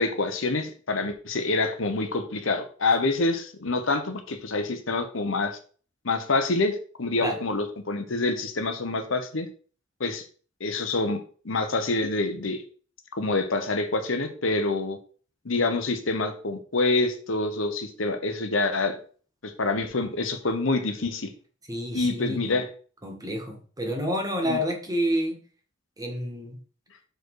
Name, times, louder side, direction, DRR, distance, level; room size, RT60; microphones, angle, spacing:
voice 1, 0.0-5.6 6.0-9.5 10.0-10.2 10.6-12.6 13.1-15.0 15.4-19.0 19.4-21.3 21.9-22.7 24.4-24.6, left 3 dB, 80° left, 7 dB, 1.1 m, -26 dB
voice 2, 21.7-22.5 23.0-25.4 26.0-26.6, equal, 20° right, 2 dB, 1.6 m, -29 dB
6.4 x 4.7 x 4.8 m, 0.41 s
head